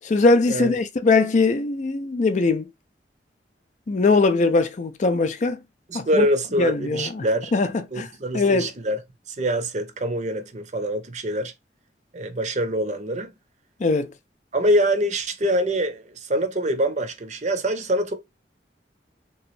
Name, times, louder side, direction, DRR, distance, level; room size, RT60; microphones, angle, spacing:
voice 1, 0.0-2.7 3.9-5.6 5.9-6.3 6.6-7.2 7.5-7.7 8.0-8.1 8.3-8.7 13.8-14.1, left 3 dB, 45° left, 0.4 m, -20 dB
voice 2, 5.9-7.6 7.9-9.0 9.3-11.5 12.1-13.3 14.5-18.1, right 1 dB, 40° right, 0.7 m, -24 dB
3.4 x 3.0 x 3.1 m
head